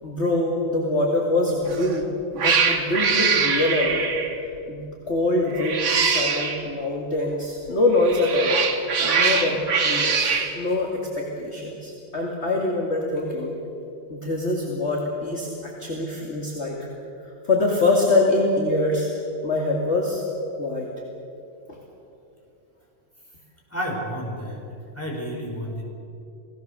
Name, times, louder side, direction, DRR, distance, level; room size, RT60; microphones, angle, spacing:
voice 1, 0.0-2.1 2.4-4.0 4.7-8.6 9.0-13.5 14.1-16.9 17.4-19.1 19.4-20.2 20.5-20.9 21.7-21.8, left 2 dB, 35° left, -1 dB, 2.5 m, -24 dB
Cat, 1.7-2.0 2.4-4.4 5.5-6.6 7.9-10.5, right 5 dB, 80° right, 2.6 m, -23 dB
voice 2, 23.7-24.6 25.0-25.8, equal, 5° left, -2 dB, 5.3 m, -30 dB
28.5 x 18.0 x 6.9 m, 2.7 s
omnidirectional pair, 2.1 m